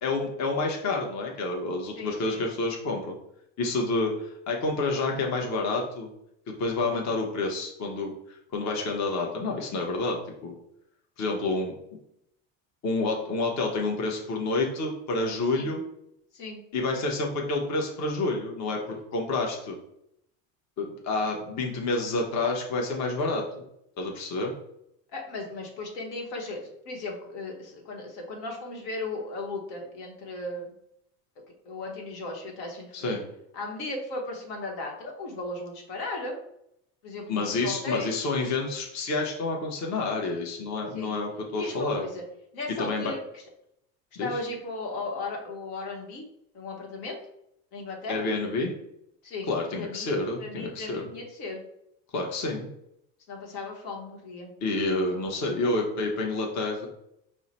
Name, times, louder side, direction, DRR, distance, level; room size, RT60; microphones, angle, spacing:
voice 1, 0.0-3.2 3.6-6.1 6.6-10.5 11.2-11.7 12.8-15.8 16.7-19.8 20.8-23.4 24.0-24.5 32.9-33.2 37.3-42.0 42.8-43.1 44.2-44.3 48.1-48.7 49.5-51.1 52.1-52.7 54.6-56.9, left 3 dB, 45° left, 1 dB, 0.9 m, -29 dB
voice 2, 1.9-2.4 15.5-15.7 16.3-16.6 25.1-30.7 31.7-33.2 33.5-36.4 37.0-38.3 40.9-41.1 41.5-42.2 42.5-43.4 44.2-46.3 46.5-47.2 47.7-48.3 49.2-49.5 49.8-50.1 50.4-51.6 53.3-54.5 55.0-55.2, left 2 dB, 80° left, 0 dB, 1.2 m, -36 dB
4.7 x 2.1 x 4.1 m, 0.76 s
supercardioid pair, 100°, 39 cm